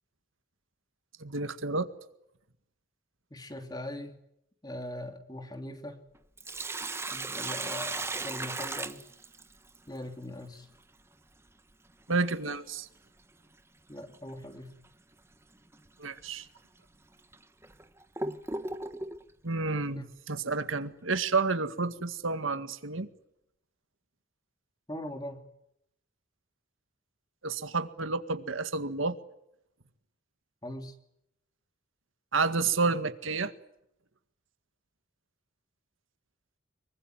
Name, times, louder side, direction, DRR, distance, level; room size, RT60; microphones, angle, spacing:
voice 1, 1.2-1.9 12.1-12.9 16.0-16.5 19.4-23.1 27.4-29.2 32.3-33.5, right 4 dB, 80° right, 10 dB, 1.9 m, -30 dB
voice 2, 3.3-4.1 4.6-6.0 7.1-9.0 9.9-10.7 13.9-14.7 19.9-20.1 24.9-25.4 30.6-30.9, left 1 dB, 20° left, 6 dB, 2.9 m, -41 dB
Sink (filling or washing), 6.2-9.8 12.2-12.3 14.1-14.4 14.8-14.9 15.7-15.9 16.6-16.7 17.3-19.2, right 3 dB, 15° right, 1.1 m, -36 dB
25.5 x 23.5 x 9.3 m, 0.80 s
head